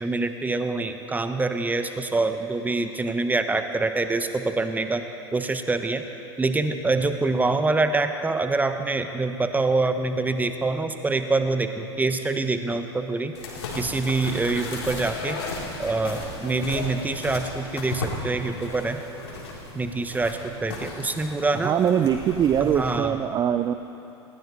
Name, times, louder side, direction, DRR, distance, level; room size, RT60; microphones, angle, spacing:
voice 1, 0.0-5.0 5.3-6.0 6.4-13.3 13.8-15.4 15.8-19.0 19.7-21.7 22.6-23.1, right 3 dB, 10° right, 8 dB, 1.1 m, -25 dB
sound 1, 13.3-23.0, left 3 dB, 70° left, 3.6 m, -35 dB
voice 2, 21.5-23.7, right 9 dB, 30° right, 9 dB, 0.6 m, -22 dB
20.5 x 17.0 x 4.2 m, 2.9 s
figure-of-eight pair, 80°, 14 cm